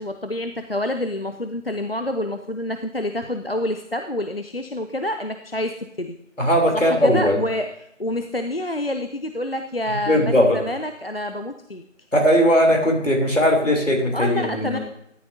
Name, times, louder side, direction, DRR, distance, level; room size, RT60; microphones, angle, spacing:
voice 1, 0.0-6.1 6.7-7.7 8.0-11.8 14.1-14.8, left 1 dB, 50° left, 7 dB, 0.5 m, -27 dB
voice 2, 6.4-7.4 10.1-10.6 12.1-14.8, equal, 70° left, 0 dB, 3.6 m, -18 dB
12.5 x 9.5 x 2.8 m, 0.76 s
figure-of-eight pair, 175°, 38 cm